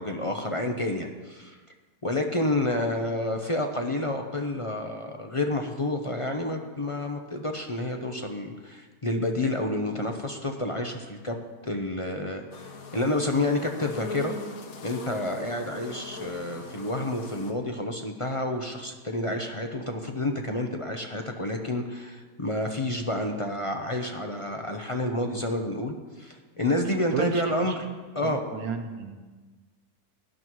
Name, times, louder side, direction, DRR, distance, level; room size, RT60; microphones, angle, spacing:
voice 1, 0.0-1.6 2.0-11.4 11.6-14.3 14.8-27.9 28.1-28.4, left 1 dB, 30° left, 3 dB, 0.6 m, -29 dB
sound 1, 12.5-17.5, left 4 dB, 65° left, 1.4 m, -40 dB
voice 2, 27.1-27.8 28.2-29.1, right 5 dB, 70° right, 6 dB, 1.4 m, -32 dB
17.0 x 11.5 x 3.1 m, 1.4 s
omnidirectional pair, 1.6 m